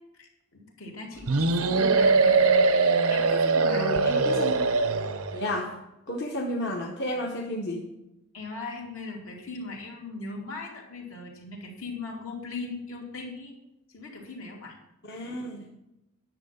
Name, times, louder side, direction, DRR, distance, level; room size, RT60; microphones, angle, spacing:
voice 1, 0.1-2.4 3.1-3.9 8.3-13.5 13.9-14.8, left 3 dB, 75° left, -1 dB, 2.7 m, -39 dB
sound 1, 1.3-5.4, right 4 dB, 85° right, 0.8 m, -22 dB
voice 2, 3.7-4.7 5.3-5.8 6.1-7.8 15.1-15.7, left 1 dB, 50° left, -1 dB, 1.1 m, -32 dB
10.5 x 7.2 x 5.7 m, 0.92 s
head